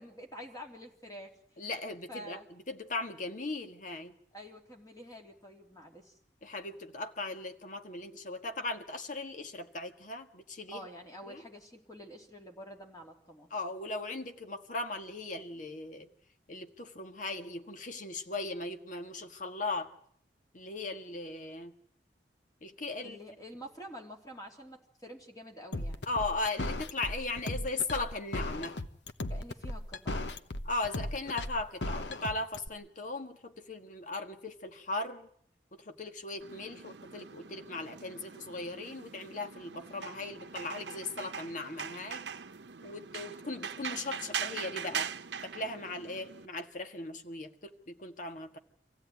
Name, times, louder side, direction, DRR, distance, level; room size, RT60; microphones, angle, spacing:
voice 1, 0.0-1.3 2.1-2.5 4.3-6.2 10.7-13.5 23.0-26.0 29.3-30.4, equal, 20° left, 2 dB, 3.1 m, -48 dB
voice 2, 1.6-2.4 2.7-4.1 6.4-10.8 11.3-11.4 13.5-16.1 16.5-19.9 20.5-21.7 22.6-23.2 26.1-28.8 30.6-35.3 35.7-42.3 42.8-45.1 45.4-48.6, left 2 dB, 45° left, 6 dB, 1.6 m, -38 dB
sound 1, 25.7-32.7, left 1 dB, 85° left, 1.1 m, -36 dB
sound 2, 36.4-46.5, right 7 dB, 80° right, 0.9 m, -42 dB
25.5 x 16.0 x 9.4 m, 0.66 s
head